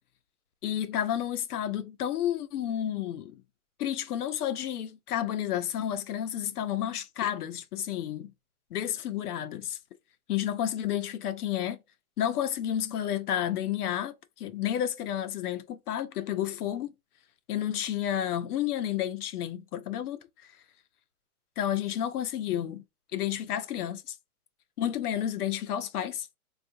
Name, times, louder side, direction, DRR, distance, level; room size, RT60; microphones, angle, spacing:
voice 1, 0.6-3.4 3.8-8.3 8.7-9.8 10.3-11.8 12.2-16.9 17.5-20.2 21.6-22.8 23.1-24.2 24.8-26.3, left 11 dB, 80° left, 0.7 m, -31 dB
3.5 x 2.4 x 2.7 m
hypercardioid pair, 175°, 45 cm